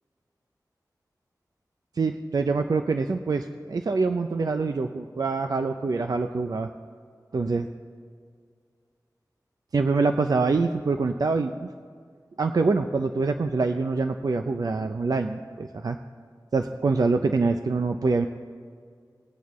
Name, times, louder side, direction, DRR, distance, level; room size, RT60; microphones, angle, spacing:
voice 1, 2.0-6.7 7.3-7.7 9.7-11.7 12.4-16.0 16.5-18.3, right 4 dB, 65° right, 6 dB, 0.5 m, -25 dB
20.0 x 8.1 x 3.1 m, 2.1 s
wide cardioid pair, 80°, 7 cm